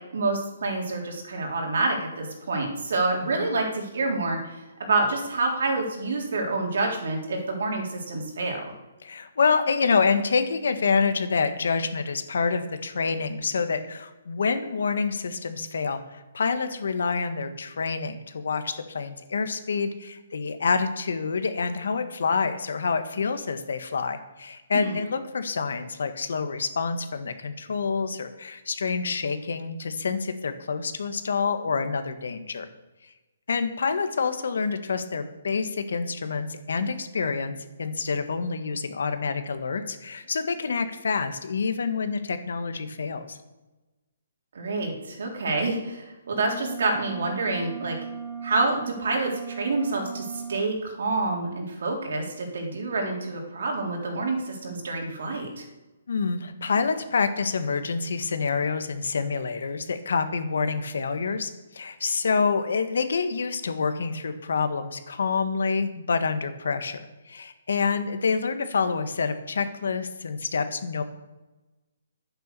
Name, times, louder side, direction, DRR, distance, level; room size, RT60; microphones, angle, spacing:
voice 1, 0.1-8.6 24.7-24.9 44.5-48.0 48.4-55.7, right 3 dB, 60° right, 1 dB, 3.8 m, -27 dB
voice 2, 9.0-32.7 33.5-43.4 56.1-67.0 67.3-71.0, left 5 dB, 70° left, 9 dB, 1.5 m, -27 dB
sound 1, 46.3-50.7, right 6 dB, 20° right, 1.9 m, -37 dB
11.0 x 9.1 x 6.8 m, 1.1 s
hypercardioid pair, 175°, 0 cm